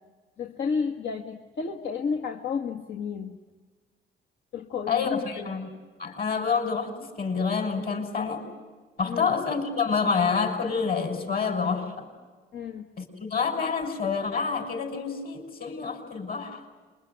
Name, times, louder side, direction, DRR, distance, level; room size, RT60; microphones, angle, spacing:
voice 1, 0.4-3.4 4.5-5.6 9.1-9.4 12.5-12.9, left 5 dB, 65° left, 2 dB, 1.9 m, -32 dB
voice 2, 4.9-5.7 6.0-8.4 9.0-12.1 13.0-16.6, left 5 dB, 50° left, 5 dB, 6.3 m, -28 dB
27.5 x 23.0 x 9.5 m, 1.4 s
cardioid pair, 90°, 20 cm